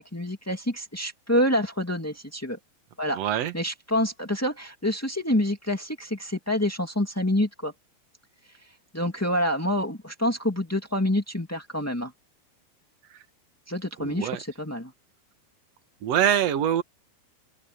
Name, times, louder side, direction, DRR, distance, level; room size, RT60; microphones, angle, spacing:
voice 1, 0.0-2.6 3.0-7.7 8.9-12.1 13.7-14.9, left 1 dB, 15° left, 0.6 m, -27 dB
voice 2, 3.1-3.5 14.0-14.4 16.0-16.8, right 10 dB, 60° right, 1.8 m, -24 dB
open air
omnidirectional pair, 4.6 m